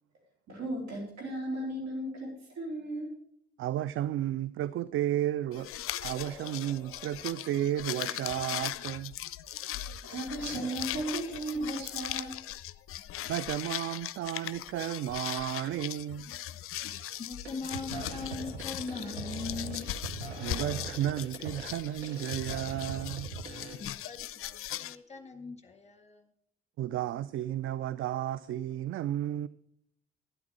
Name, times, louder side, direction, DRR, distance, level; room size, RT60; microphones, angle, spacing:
voice 1, 0.5-3.1 9.8-12.3, right 1 dB, 60° right, 3.6 m, -36 dB
voice 2, 3.6-5.7 6.0-9.1 13.3-16.3 20.4-23.3 26.8-29.5, right 12 dB, 40° right, 0.4 m, -33 dB
sound 1, 5.5-24.9, left 13 dB, 45° left, 0.5 m, -39 dB
sound 2, 6.0-8.1 10.2-12.3, left 1 dB, ahead, 5.3 m, -53 dB
sound 3, 16.9-17.2 17.5-23.7, right 3 dB, 85° right, 1.2 m, -41 dB
voice 3, 17.2-19.9 23.8-26.3, left 4 dB, 20° left, 1.9 m, -40 dB
12.0 x 9.6 x 4.8 m
figure-of-eight pair, 40°, 32 cm